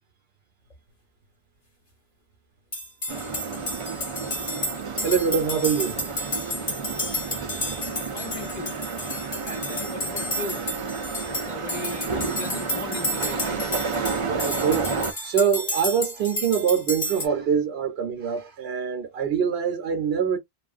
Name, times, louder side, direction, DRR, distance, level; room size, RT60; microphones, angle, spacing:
sound 1, 2.7-17.3, left 1 dB, 35° left, 0.9 m, -32 dB
sound 2, 3.1-15.1, right 4 dB, 45° right, 0.4 m, -31 dB
voice 1, 5.0-6.3 14.2-20.4, right 7 dB, 75° right, 0.9 m, -25 dB
voice 2, 7.8-8.8 9.4-10.6 10.9-13.7, left 4 dB, 50° left, 0.6 m, -38 dB
2.9 x 2.4 x 2.4 m
omnidirectional pair, 1.1 m